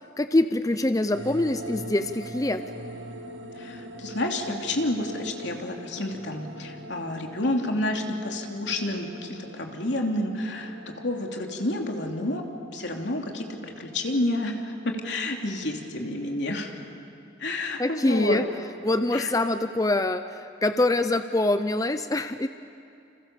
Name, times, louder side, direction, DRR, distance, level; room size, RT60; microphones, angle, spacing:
voice 1, 0.2-2.6 17.8-18.5 18.8-22.5, left 2 dB, 20° left, 9 dB, 0.6 m, -24 dB
sound 1, 1.1-17.0, equal, 80° right, 2.6 m, -43 dB
voice 2, 3.6-12.4 12.7-16.7 17.4-18.4 19.1-19.3, left 1 dB, 75° left, 2 dB, 3.0 m, -30 dB
29.5 x 28.0 x 7.2 m, 2.6 s
head